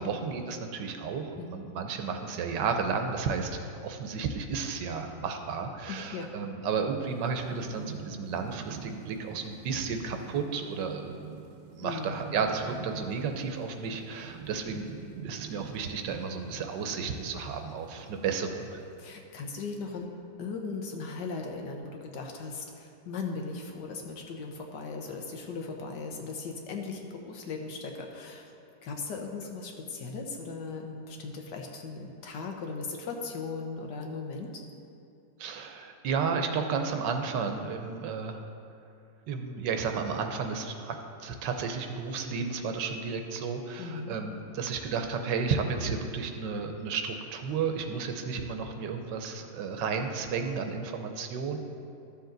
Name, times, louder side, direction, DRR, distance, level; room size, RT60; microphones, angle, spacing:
voice 1, 0.0-11.1 11.7-15.0 15.2-18.8 35.4-38.4 39.3-41.0 41.2-51.6, right 5 dB, 90° right, 5 dB, 1.4 m, -32 dB
voice 2, 5.9-6.3 11.8-12.2 19.0-20.1 20.4-28.5 28.8-34.6 43.8-44.1, left 4 dB, 75° left, 2 dB, 1.6 m, -38 dB
Thunderstorm / Rain, 7.0-19.3, right 7 dB, 75° right, 1.2 m, -46 dB
13.0 x 7.1 x 3.9 m, 2.6 s
omnidirectional pair, 1.9 m